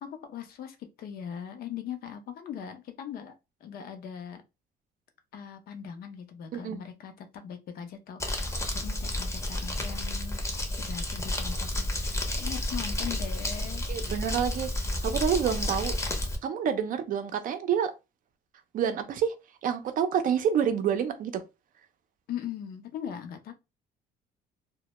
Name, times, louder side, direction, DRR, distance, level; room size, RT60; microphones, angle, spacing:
voice 1, 0.0-4.4 5.3-10.4 10.8-14.1 22.3-23.5, left 8 dB, 60° left, 0.5 m, -40 dB
voice 2, 6.5-6.8 13.9-16.0 16.4-17.9 18.7-19.3 19.6-21.4, right 8 dB, 55° right, 0.5 m, -28 dB
Crumpling crinkling, 8.2-16.4, left 1 dB, 15° left, 0.6 m, -31 dB
2.1 x 2.1 x 2.9 m
cardioid pair, 110°, 17 cm